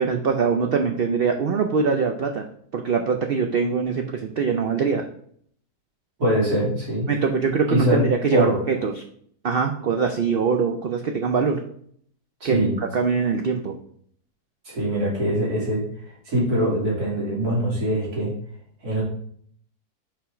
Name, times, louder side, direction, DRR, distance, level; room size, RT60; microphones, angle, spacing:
voice 1, 0.0-2.4 2.7-5.0 7.1-9.0 9.4-11.6 12.4-12.7 12.9-13.7, right 5 dB, 60° right, 5 dB, 0.6 m, -23 dB
voice 2, 6.2-7.1 7.7-8.0 8.3-8.6 12.4-12.7 14.6-18.3 18.8-19.0, equal, 75° right, -6 dB, 3.4 m, -23 dB
5.7 x 5.1 x 4.9 m, 0.62 s
omnidirectional pair, 1.7 m